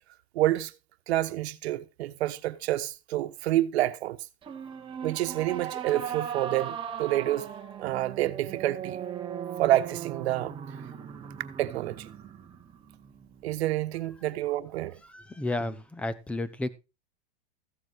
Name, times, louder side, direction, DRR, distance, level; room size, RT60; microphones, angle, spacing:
voice 1, 0.3-0.7 1.1-4.2 5.0-7.5 7.8-9.0 9.6-10.5 11.6-12.1 13.4-15.0, right 14 dB, 70° right, 1.2 m, -28 dB
sound 1, 4.4-13.8, right 8 dB, 15° right, 1.4 m, -38 dB
voice 2, 15.1-16.7, left 2 dB, 5° left, 0.5 m, -32 dB
14.5 x 7.4 x 4.7 m
supercardioid pair, 155°, 33 cm